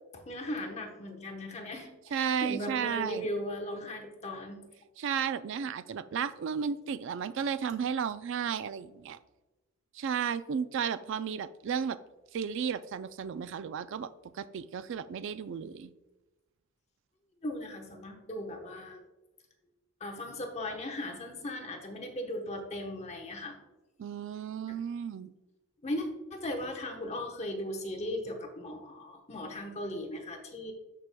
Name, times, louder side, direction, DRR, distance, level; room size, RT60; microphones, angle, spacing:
voice 1, 0.1-4.7 17.4-19.0 20.0-23.6 24.7-24.8 25.8-30.7, left 1 dB, 30° left, 2 dB, 1.0 m, -38 dB
voice 2, 2.1-3.3 5.0-9.2 10.0-12.0 12.3-15.9 24.0-25.3, right 7 dB, 60° right, 14 dB, 0.3 m, -33 dB
14.0 x 4.9 x 2.2 m, 1.1 s
head